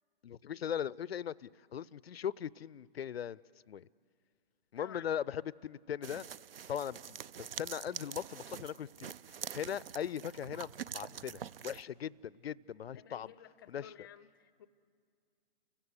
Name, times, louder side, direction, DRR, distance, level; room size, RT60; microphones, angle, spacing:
voice 1, 0.2-3.4 3.7-3.9 4.7-6.3 6.7-9.1 9.5-13.3 13.7-13.9, left 9 dB, 85° left, 22 dB, 0.5 m, -39 dB
sound 1, 6.0-11.8, right 8 dB, 70° right, 0.5 m, -45 dB
voice 2, 12.9-14.7, left 10 dB, 25° left, 16 dB, 0.5 m, -53 dB
30.0 x 16.0 x 8.1 m, 2.2 s
hypercardioid pair, 145°, 30 cm